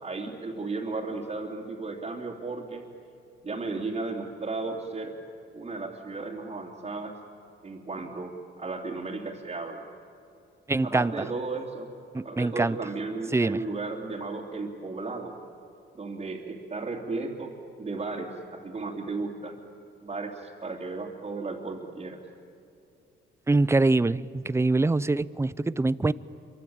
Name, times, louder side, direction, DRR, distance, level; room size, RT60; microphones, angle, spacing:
voice 1, 0.0-2.8 3.4-5.2 5.5-7.2 7.6-9.8 10.8-11.9 12.2-15.3 15.9-19.5 20.0-22.2, right 3 dB, 35° right, -4 dB, 3.2 m, -34 dB
voice 2, 10.7-11.1 12.1-12.8 13.3-13.6 23.5-26.1, right 3 dB, 15° right, 19 dB, 0.6 m, -24 dB
27.0 x 24.5 x 9.0 m, 2.7 s
cardioid pair, 90°, 20 cm